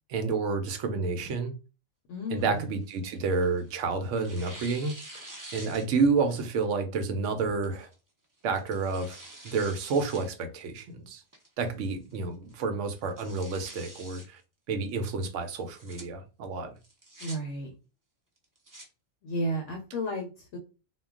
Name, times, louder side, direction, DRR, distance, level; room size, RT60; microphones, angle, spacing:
voice 1, 0.1-1.5 2.3-4.9 5.5-7.9 8.4-9.2 9.4-11.2 11.6-14.4 14.7-16.7, right 4 dB, 70° right, 0.9 m, -29 dB
voice 2, 2.1-2.7 17.2-17.7 19.2-20.6, equal, 70° left, 0.9 m, -33 dB
Tearing, 2.4-3.7 4.2-6.2 6.6-6.7 7.6-7.9 8.5-10.3 10.6-10.7 11.3-11.7 12.1-12.2 12.5-12.6 13.0-14.3 15.6-16.0 16.8-17.4 18.4-18.9, right 1 dB, 30° right, 0.4 m, -47 dB
2.3 x 2.2 x 3.5 m
omnidirectional pair, 1.4 m